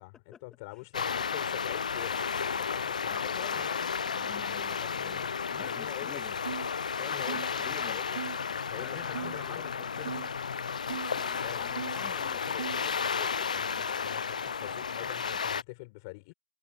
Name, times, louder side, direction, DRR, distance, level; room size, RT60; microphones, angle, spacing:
voice 1, 0.0-3.9 4.8-6.2 7.0-8.2 8.5-9.7 11.4-12.4 13.5-16.3, left 27 dB, 30° left, 4.6 m, -45 dB
sound 1, 0.9-15.6, left 6 dB, 75° left, 0.8 m, -33 dB
voice 2, 4.0-5.2 5.5-6.3 7.0-7.3 7.6-8.0 8.8-10.3 10.9-13.5, left 8 dB, 15° left, 2.5 m, -48 dB
sound 2, 6.4-6.7 7.3-7.5 8.1-8.4 9.1-9.4 10.0-10.3 10.9-11.1 11.7-12.0 12.6-12.9, right 8 dB, 60° right, 0.4 m, -38 dB
hypercardioid pair, 145°, 4 cm